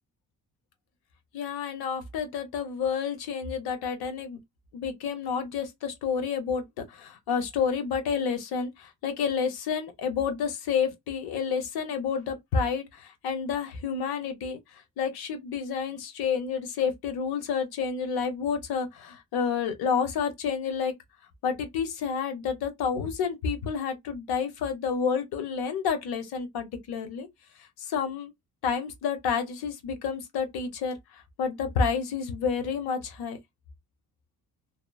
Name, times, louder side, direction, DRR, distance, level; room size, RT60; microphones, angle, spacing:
voice 1, 1.3-4.4 4.7-20.9 21.4-27.3 27.6-28.3 28.6-33.4, left 6 dB, 85° left, 1.0 m, -30 dB
2.9 x 2.1 x 2.3 m
cardioid pair, 90°, 37 cm